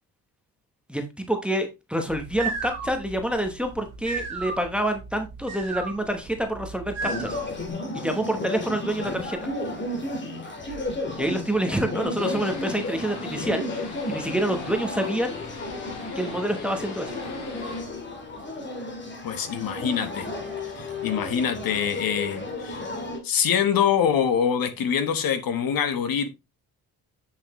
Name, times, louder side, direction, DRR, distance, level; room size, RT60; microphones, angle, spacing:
voice 1, 0.9-7.4 7.9-9.5 11.2-15.4 16.2-17.1, right 1 dB, 5° right, 1.0 m, -27 dB
sound 1, 2.1-7.7, right 4 dB, 45° right, 2.6 m, -35 dB
sound 2, 7.0-23.2, left 2 dB, 30° left, 1.9 m, -33 dB
sound 3, 12.2-17.8, left 5 dB, 75° left, 3.0 m, -41 dB
voice 2, 19.2-20.3 20.6-22.9 23.2-26.3, left 8 dB, 60° left, 1.2 m, -25 dB
8.0 x 7.2 x 3.1 m
cardioid pair, 165°, 39 cm